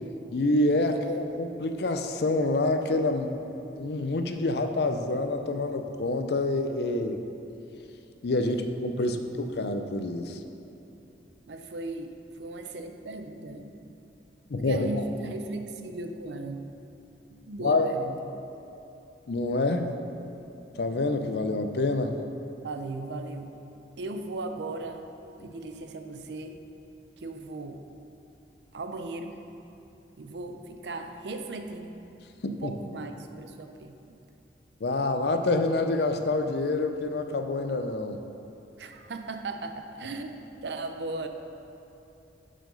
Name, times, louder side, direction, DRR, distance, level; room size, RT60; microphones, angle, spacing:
voice 1, 0.3-3.3 3.8-7.2 8.2-10.4 14.5-14.9 17.6-17.9 19.3-19.9 20.8-22.2 32.4-32.7 34.8-38.2, left 2 dB, 65° left, 7 dB, 0.5 m, -27 dB
voice 2, 9.0-9.5 11.5-13.7 14.6-16.6 17.3-18.2 22.6-23.5 24.0-25.1 25.4-26.6 27.2-27.8 28.7-29.4 30.2-32.0 32.4-34.0 38.8-41.3, right 2 dB, 75° right, 6 dB, 0.5 m, -37 dB
7.5 x 5.1 x 5.4 m, 2.9 s
head